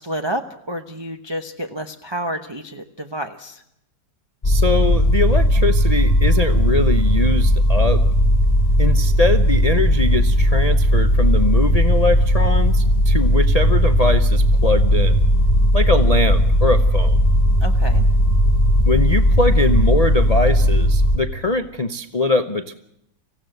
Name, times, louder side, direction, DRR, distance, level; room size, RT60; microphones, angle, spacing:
voice 1, 0.0-3.6 17.6-18.0, right 1 dB, 20° right, 3 dB, 0.7 m, -29 dB
voice 2, 4.4-8.0 8.8-15.2 15.7-17.2 18.8-22.7, left 3 dB, 80° left, 8 dB, 0.3 m, -22 dB
sound 1, 4.4-21.2, equal, 20° left, 1.4 m, -16 dB
25.5 x 16.0 x 7.9 m, 0.79 s
omnidirectional pair, 2.1 m